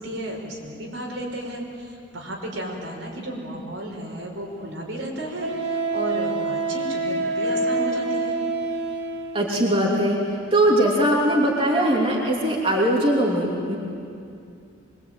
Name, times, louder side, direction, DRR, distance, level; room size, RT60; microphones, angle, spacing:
voice 1, 0.0-8.4, right 1 dB, 70° right, 0 dB, 5.3 m, -33 dB
Wind instrument woodwind instrument, 4.1-4.2 5.4-9.5, right 3 dB, 55° right, 2.6 m, -26 dB
voice 2, 9.3-10.2 10.5-13.8, right 1 dB, 25° right, -3 dB, 3.0 m, -20 dB
24.0 x 24.0 x 9.1 m, 2.5 s
head